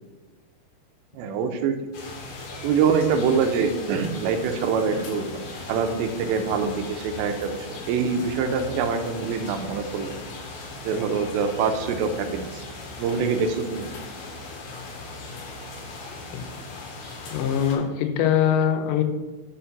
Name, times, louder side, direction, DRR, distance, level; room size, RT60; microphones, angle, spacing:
voice 1, 1.1-1.8 2.6-10.2 10.8-12.6 13.0-13.9, right 6 dB, 85° right, 7 dB, 2.9 m, -25 dB
sound 1, 1.9-17.8, left 3 dB, 60° left, 2.3 m, -38 dB
voice 2, 17.3-19.0, left 9 dB, 85° left, 6 dB, 3.0 m, -22 dB
6.4 x 5.4 x 5.8 m, 1.2 s
omnidirectional pair, 5.0 m